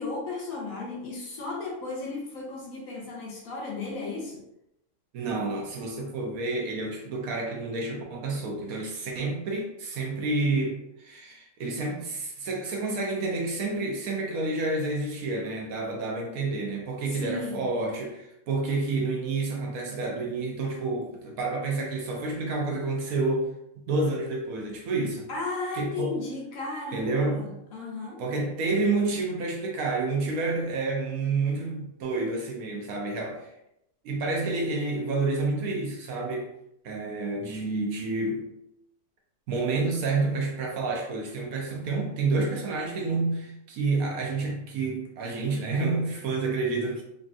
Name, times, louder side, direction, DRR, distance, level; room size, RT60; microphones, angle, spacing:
voice 1, 0.0-4.4 17.1-17.7 25.3-28.2, left 3 dB, 70° left, -1 dB, 0.9 m, -35 dB
voice 2, 5.1-23.5 23.9-25.3 25.7-26.2 26.9-27.4 28.2-33.5 34.0-36.5 36.8-38.5 39.5-47.0, right 3 dB, 70° right, 0 dB, 0.9 m, -29 dB
3.3 x 2.6 x 2.3 m, 0.82 s
omnidirectional pair, 1.8 m